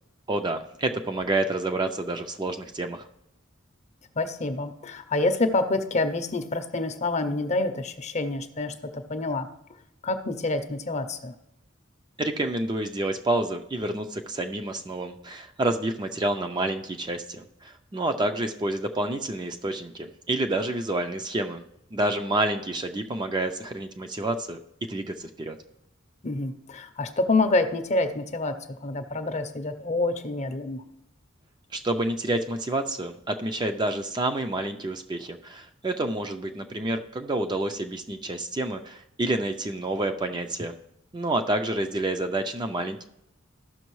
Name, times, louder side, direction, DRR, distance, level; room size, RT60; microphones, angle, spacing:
voice 1, 0.3-3.0 12.2-21.6 21.9-24.6 24.9-25.6 31.7-40.8 41.1-43.0, right 2 dB, 20° right, 5 dB, 0.4 m, -28 dB
voice 2, 4.2-9.5 10.0-11.3 26.2-30.8, left 2 dB, 35° left, 8 dB, 0.6 m, -27 dB
14.0 x 6.1 x 3.1 m, 0.81 s
head